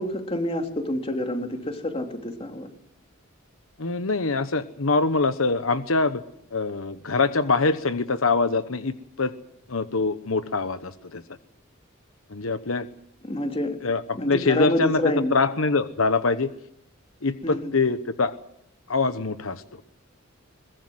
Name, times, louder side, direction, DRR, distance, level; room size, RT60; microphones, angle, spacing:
voice 1, 0.0-2.7 13.2-13.8 14.2-15.4 17.4-17.7, left 1 dB, 30° left, 4 dB, 3.1 m, -27 dB
voice 2, 3.8-6.2 6.5-9.3 9.7-11.2 12.3-12.9 13.8-16.5 17.2-18.4 18.9-19.8, left 3 dB, 85° left, 11 dB, 1.1 m, -24 dB
22.5 x 21.0 x 7.9 m, 0.74 s
head